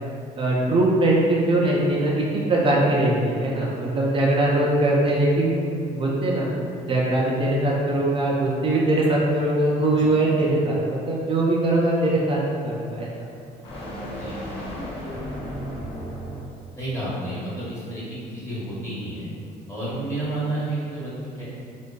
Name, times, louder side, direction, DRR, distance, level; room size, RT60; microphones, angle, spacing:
voice 1, 0.4-5.5 5.9-6.5 6.9-13.1, right 1 dB, 30° right, -4 dB, 0.3 m, -21 dB
sound 1, 2.3-16.6, equal, 35° left, 0.7 m, -39 dB
voice 2, 9.8-10.2 14.2-14.7 16.8-19.3 19.7-21.4, right 1 dB, 15° left, -10 dB, 1.0 m, -31 dB
2.5 x 2.2 x 2.2 m, 2.4 s
cardioid pair, 110°, 17 cm